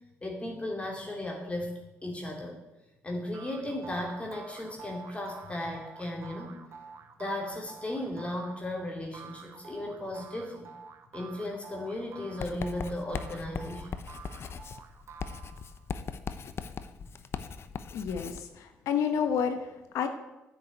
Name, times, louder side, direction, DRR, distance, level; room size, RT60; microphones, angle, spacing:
voice 1, 0.2-1.7 2.0-2.6 3.0-6.6 7.2-10.7 11.1-13.9, left 1 dB, 25° left, 0 dB, 2.8 m, -36 dB
sound 1, 3.3-15.9, right 6 dB, 60° right, 1.6 m, -49 dB
Writing, 12.4-18.5, left 6 dB, 55° left, 0.8 m, -39 dB
voice 2, 17.9-20.1, left 7 dB, 80° left, 7 dB, 1.2 m, -30 dB
9.9 x 6.7 x 9.1 m, 1.0 s
supercardioid pair, 70°, 5 cm